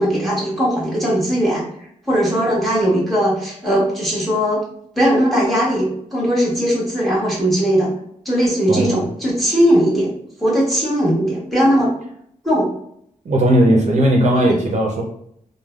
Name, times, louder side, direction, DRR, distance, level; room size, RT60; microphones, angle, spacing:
voice 1, 0.0-1.6 2.1-4.6 5.0-7.9 8.2-10.1 10.4-11.9 12.4-12.7 14.4-14.7, equal, ahead, -6 dB, 1.2 m, -18 dB
voice 2, 8.7-9.0 13.2-15.0, right 1 dB, 55° right, -1 dB, 0.6 m, -16 dB
3.2 x 2.2 x 2.3 m, 0.70 s
wide cardioid pair, 120°, 14 cm